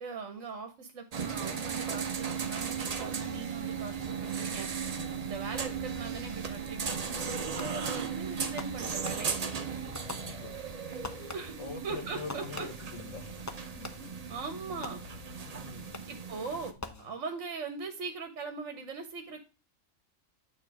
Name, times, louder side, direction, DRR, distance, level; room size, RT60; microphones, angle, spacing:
voice 1, 0.0-4.7 5.2-9.3 11.3-11.5 11.8-12.7 14.3-15.0 16.1-16.7 17.0-19.4, right 4 dB, 65° right, 7 dB, 1.2 m, -40 dB
sound 1, 1.1-16.7, right 6 dB, 45° right, 0.5 m, -37 dB
sound 2, 2.0-16.1, left 4 dB, 90° left, 1.2 m, -52 dB
voice 2, 4.9-5.2 10.1-10.5 11.6-13.3 13.8-14.1 15.5-15.9 16.8-17.0, left 4 dB, 70° left, 4 dB, 1.5 m, -44 dB
Fireworks, 7.6-8.0 8.6-9.6 9.9-10.7 11.0-11.7 12.3-14.3 14.8-15.5 15.9-16.3 16.8-17.6, left 2 dB, 25° left, 0.4 m, -45 dB
9.0 x 3.2 x 4.6 m, 0.33 s
omnidirectional pair, 1.4 m